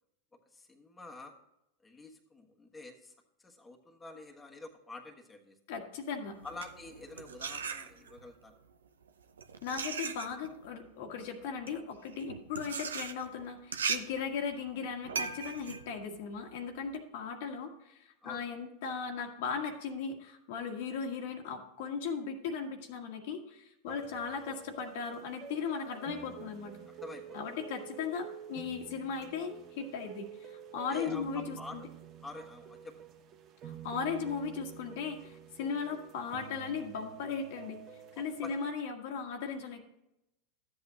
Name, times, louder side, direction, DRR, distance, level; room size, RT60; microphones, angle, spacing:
voice 1, 0.5-1.3 1.8-3.1 3.4-5.6 6.4-8.6 18.2-18.5 23.9-24.1 26.9-27.4 30.7-31.9 32.2-33.0 38.1-38.5, left 2 dB, 15° left, 1 dB, 1.4 m, -47 dB
voice 2, 5.7-6.4 9.6-26.8 27.3-31.8 33.6-37.8 38.2-39.8, left 6 dB, 65° left, 3 dB, 1.6 m, -37 dB
sound 1, 6.3-8.3 9.1-17.0, right 6 dB, 90° right, 0.6 m, -39 dB
sound 2, 23.9-38.7, right 8 dB, 45° right, 1.2 m, -49 dB
12.5 x 8.2 x 2.8 m, 0.87 s
hypercardioid pair, 95°, 0 cm